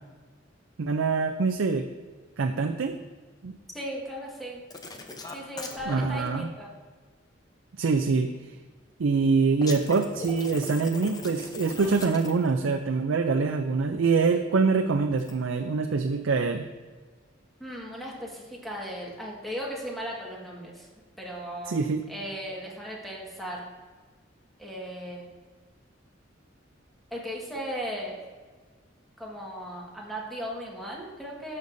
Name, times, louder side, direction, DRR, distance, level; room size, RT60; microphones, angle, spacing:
voice 1, 0.8-1.9 2.4-3.0 3.4-3.5 5.9-6.5 7.8-8.3 9.0-16.7 21.7-22.0, right 4 dB, 90° right, 4 dB, 0.5 m, -25 dB
voice 2, 3.7-4.6 5.3-6.7 17.6-20.9 21.2-21.7 22.1-23.7 24.6-25.3 27.1-28.2 29.2-31.6, equal, ahead, -3 dB, 1.6 m, -37 dB
sound 1, 4.7-6.1 9.6-12.6 15.1-15.3, left 2 dB, 20° left, 0.7 m, -39 dB
12.0 x 6.6 x 2.6 m, 1.4 s
head